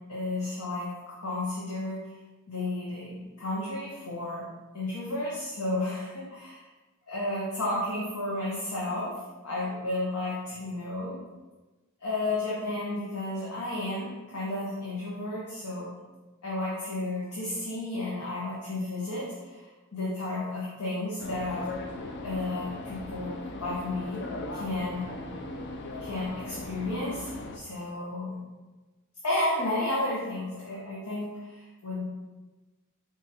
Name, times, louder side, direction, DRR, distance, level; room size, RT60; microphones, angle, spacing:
voice 1, 0.1-2.1 2.5-4.5 4.7-6.5 7.1-9.1 9.4-11.2 12.0-15.9 16.4-21.7 22.2-25.1 26.0-28.4 29.2-32.0, left 2 dB, 85° left, -6 dB, 1.0 m, -32 dB
sound 1, 21.2-27.6, left 2 dB, 55° left, 0.5 m, -38 dB
4.9 x 3.8 x 2.8 m, 1.2 s
head